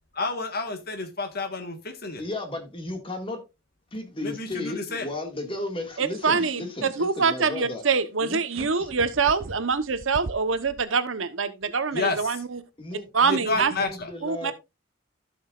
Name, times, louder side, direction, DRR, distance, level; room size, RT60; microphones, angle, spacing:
voice 1, 0.1-2.2 4.2-5.1 11.9-12.2 13.3-14.1, left 3 dB, 50° left, 1.5 m, -30 dB
voice 2, 2.2-3.4 3.9-7.8 8.2-8.9 12.8-14.5, left 2 dB, 25° left, 2.0 m, -35 dB
voice 3, 6.0-6.6 7.0-12.6 13.1-13.7 14.2-14.5, right 5 dB, 85° right, 1.0 m, -25 dB
sound 1, 8.5-10.8, right 2 dB, 50° right, 0.6 m, -40 dB
14.5 x 6.4 x 2.5 m
head